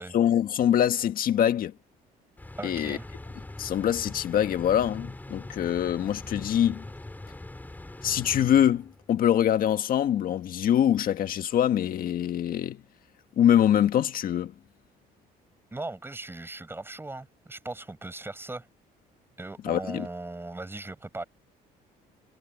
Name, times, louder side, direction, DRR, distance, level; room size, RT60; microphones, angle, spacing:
voice 1, 0.1-1.7 2.6-3.0 3.6-6.8 8.0-12.8 13.4-14.5 19.6-20.1, left 10 dB, 55° left, 1.7 m, -24 dB
sound 1, 2.4-9.1, left 2 dB, 10° left, 4.1 m, -42 dB
voice 2, 2.6-3.1 15.7-18.7 19.4-21.2, right 2 dB, 15° right, 5.9 m, -38 dB
cardioid pair, 110°, 17 cm